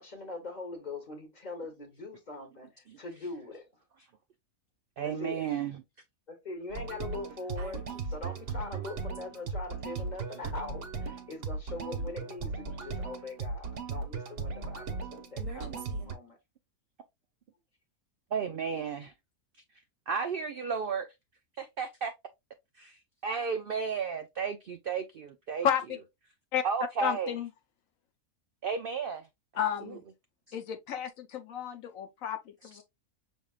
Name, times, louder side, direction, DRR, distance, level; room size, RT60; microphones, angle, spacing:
voice 1, 0.0-3.7 5.0-5.5 6.3-16.4, left 3 dB, 30° left, 1.1 m, -42 dB
voice 2, 5.0-5.8 18.3-19.1 20.1-21.1 21.6-22.1 22.8-25.7 26.6-27.3 28.6-29.3 29.5-29.9 30.5-30.6 32.6-32.7, right 6 dB, 70° right, 0.5 m, -33 dB
sound 1, 6.7-16.1, right 4 dB, 50° right, 0.8 m, -37 dB
voice 3, 25.6-26.0 26.5-26.6 27.0-27.5 29.5-30.0 30.5-32.8, left 9 dB, 70° left, 1.0 m, -32 dB
6.1 x 3.5 x 2.3 m
omnidirectional pair, 1.6 m